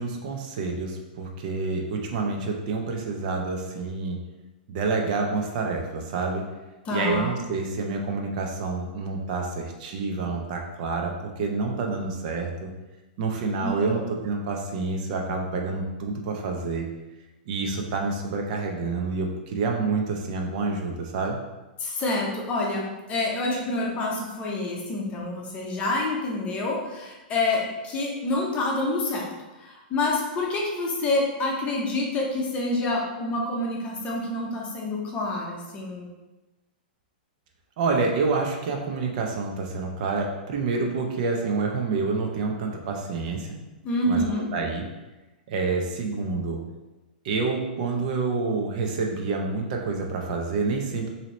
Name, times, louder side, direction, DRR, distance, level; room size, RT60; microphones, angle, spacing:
voice 1, 0.0-4.2 4.7-6.4 6.9-12.7 13.2-16.8 17.5-21.4 37.8-43.6 44.1-44.8 45.5-46.6 47.2-51.1, right 4 dB, 50° right, 2 dB, 0.6 m, -28 dB
voice 2, 6.9-7.3 13.6-14.1 21.8-29.3 29.6-36.1 43.8-44.5, left 2 dB, 25° left, -2 dB, 0.7 m, -27 dB
4.0 x 2.8 x 3.1 m, 1.1 s
hypercardioid pair, 145°, 5 cm